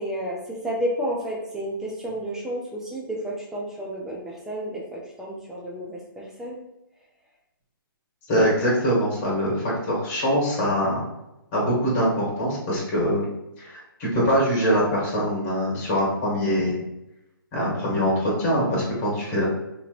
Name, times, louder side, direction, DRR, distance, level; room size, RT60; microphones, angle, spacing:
voice 1, 0.0-6.6, equal, 5° right, -3 dB, 0.5 m, -31 dB
voice 2, 8.3-11.0 11.5-13.3 13.6-16.8 17.5-19.4, equal, 30° left, -5 dB, 1.3 m, -23 dB
2.9 x 2.9 x 2.4 m, 0.92 s
hypercardioid pair, 150°, 12 cm